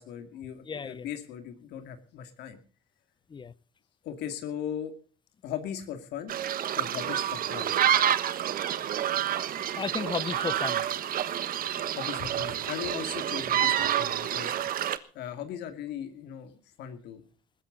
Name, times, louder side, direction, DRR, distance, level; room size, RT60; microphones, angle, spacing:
voice 1, 0.0-2.6 4.0-4.9 5.4-6.3 6.7-7.7 11.9-14.5 15.1-16.5 16.8-17.2, left 9 dB, 80° left, 2.4 m, -38 dB
voice 2, 0.6-1.1 3.3-3.5 9.2-10.8, left 5 dB, 25° left, 0.8 m, -35 dB
sound 1, 6.3-15.0, right 10 dB, 60° right, 1.3 m, -28 dB
20.0 x 15.5 x 4.0 m
cardioid pair, 110°, 17 cm